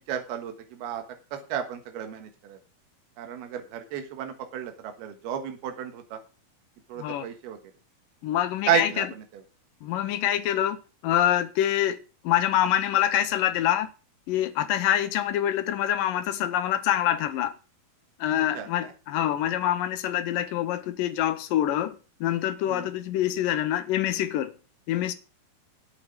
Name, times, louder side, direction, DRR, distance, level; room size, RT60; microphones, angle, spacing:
voice 1, 0.1-0.5 0.8-1.0 1.5-2.3 3.2-6.2 6.9-7.6 8.7-9.0 18.6-18.7 22.7-22.9, right 9 dB, 85° right, 3.5 m, -31 dB
voice 2, 8.2-9.1 9.8-10.8 11.0-12.0 12.2-13.9 14.3-17.5 18.2-22.0 22.2-24.5 24.9-25.1, left 12 dB, 75° left, 2.4 m, -25 dB
8.6 x 8.4 x 7.9 m
omnidirectional pair, 4.3 m